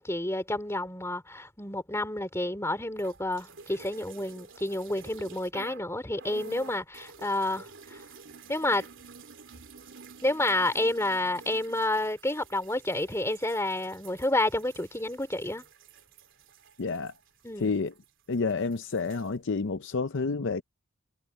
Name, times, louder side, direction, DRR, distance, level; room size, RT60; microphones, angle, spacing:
voice 1, 0.0-8.0 8.5-8.9 10.2-15.6 17.4-17.7, left 1 dB, 15° left, 3.4 m, -29 dB
sound 1, 2.9-5.9 6.2-18.1 18.3-19.3, right 4 dB, 60° right, 3.3 m, -50 dB
voice 2, 16.8-17.1 17.6-17.9 18.3-20.6, left 4 dB, 55° left, 0.6 m, -29 dB
head